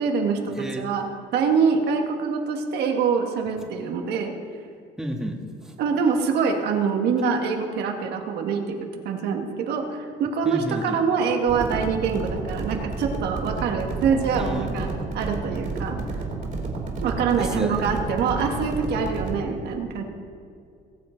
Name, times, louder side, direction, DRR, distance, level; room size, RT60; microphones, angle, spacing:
voice 1, 0.0-4.3 5.8-14.9 15.1-16.0 17.0-20.0, right 5 dB, 75° right, 3 dB, 1.7 m, -25 dB
voice 2, 0.5-0.9 5.0-5.3 5.6-5.7 10.4-11.0 14.4-15.0 17.4-17.9, right 1 dB, 5° right, 1 dB, 1.5 m, -32 dB
sound 1, 11.5-19.4, right 3 dB, 50° right, 3.0 m, -31 dB
20.5 x 7.4 x 4.5 m, 2.3 s
cardioid pair, 110°, 17 cm